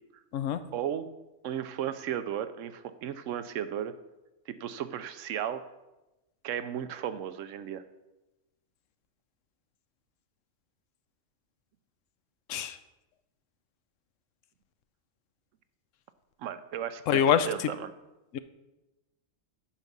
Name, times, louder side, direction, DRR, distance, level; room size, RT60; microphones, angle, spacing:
voice 1, 0.7-1.1 1.4-3.9 4.5-5.7 6.4-7.8 16.4-17.9, right 9 dB, 85° right, 12 dB, 1.0 m, -35 dB
voice 2, 17.1-17.5 18.3-18.4, left 8 dB, 80° left, 11 dB, 1.0 m, -24 dB
10.0 x 6.0 x 5.3 m, 1.0 s
omnidirectional pair, 1.3 m